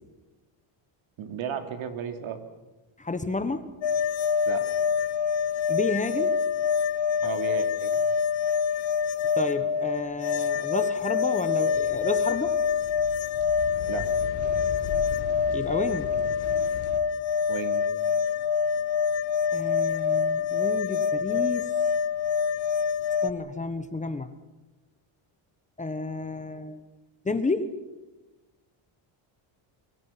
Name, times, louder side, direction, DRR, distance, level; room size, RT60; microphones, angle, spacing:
voice 1, 1.2-2.4 4.5-4.7 7.2-8.0 13.9-14.1 17.5-17.9, right 7 dB, 70° right, 7 dB, 3.1 m, -34 dB
voice 2, 3.0-3.7 5.7-6.4 9.3-12.6 15.5-16.2 19.5-21.7 23.2-24.3 25.8-26.8 27.2-27.7, left 3 dB, 15° left, 10 dB, 1.3 m, -31 dB
sound 1, 3.8-23.3, left 6 dB, 60° left, 1.1 m, -26 dB
sound 2, 11.7-17.0, left 6 dB, 80° left, 3.0 m, -39 dB
29.0 x 24.5 x 6.0 m, 1.1 s
cardioid pair, 150°, 50 cm